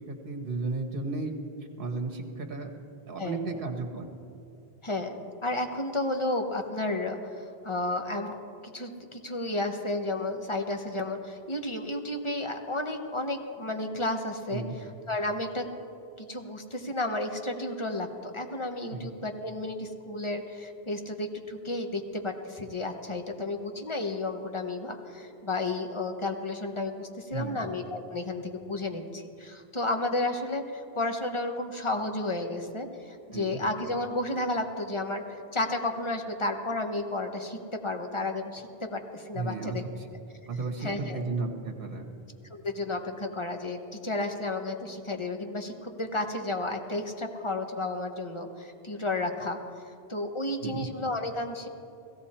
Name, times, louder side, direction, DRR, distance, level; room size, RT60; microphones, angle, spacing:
voice 1, 0.1-1.3 1.8-2.7 3.1-4.1 14.5-14.7 18.9-19.1 27.3-27.6 33.3-33.6 39.3-40.1 40.5-42.1 50.6-50.9, right 3 dB, 60° right, 4 dB, 1.4 m, -34 dB
voice 2, 3.2-3.6 4.8-14.6 15.1-15.7 16.2-39.9 40.8-41.2 42.5-49.6 50.1-51.7, left 2 dB, 30° left, 4 dB, 1.1 m, -32 dB
16.5 x 16.0 x 4.3 m, 2.6 s
omnidirectional pair, 1.1 m